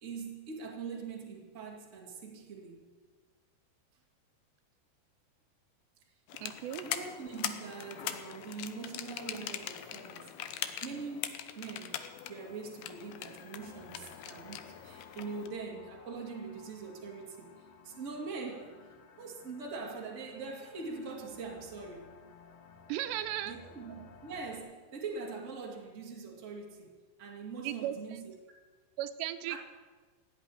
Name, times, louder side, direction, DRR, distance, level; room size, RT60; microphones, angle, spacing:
voice 1, 0.0-2.9 6.8-10.4 10.8-12.0 12.3-22.1 23.4-26.9 27.2-28.3 29.5-29.6, right 4 dB, 30° right, 0 dB, 1.5 m, -43 dB
sound 1, 6.3-15.5, left 10 dB, 75° left, 2.5 m, -41 dB
voice 2, 6.4-6.9 22.9-23.6 27.6-27.9 29.0-29.6, right 12 dB, 85° right, 10 dB, 2.9 m, -35 dB
sound 2, 13.6-24.6, left 5 dB, 50° left, 2.2 m, -56 dB
16.5 x 8.1 x 9.9 m, 1.4 s
omnidirectional pair, 4.9 m